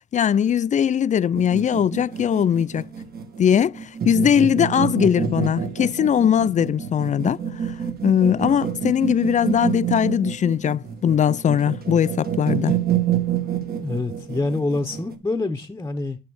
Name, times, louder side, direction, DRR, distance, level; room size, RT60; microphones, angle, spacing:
voice 1, 0.1-2.9 3.4-7.4 8.0-12.8, left 9 dB, 40° left, 0.4 m, -20 dB
sound 1, 1.3-15.1, right 8 dB, 50° right, 1.6 m, -28 dB
voice 2, 13.8-16.2, left 2 dB, 15° left, 0.9 m, -26 dB
9.5 x 3.3 x 6.3 m
cardioid pair, 90°, 20 cm